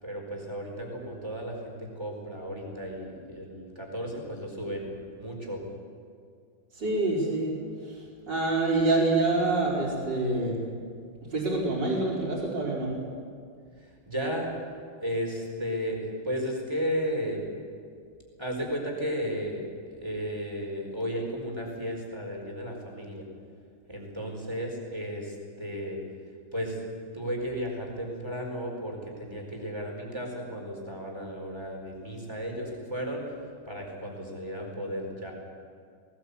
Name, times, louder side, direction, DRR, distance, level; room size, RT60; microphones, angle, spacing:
voice 1, 0.0-4.9 5.2-5.6 13.8-14.5 15.0-17.4 18.4-23.3 23.9-26.0 26.5-26.8 27.1-33.3 33.7-35.3, equal, 10° right, 0 dB, 4.4 m, -34 dB
voice 2, 6.7-7.5 7.8-10.6 11.3-12.9, right 2 dB, 55° right, -4 dB, 5.6 m, -26 dB
19.5 x 19.5 x 8.3 m, 2.2 s
omnidirectional pair, 2.3 m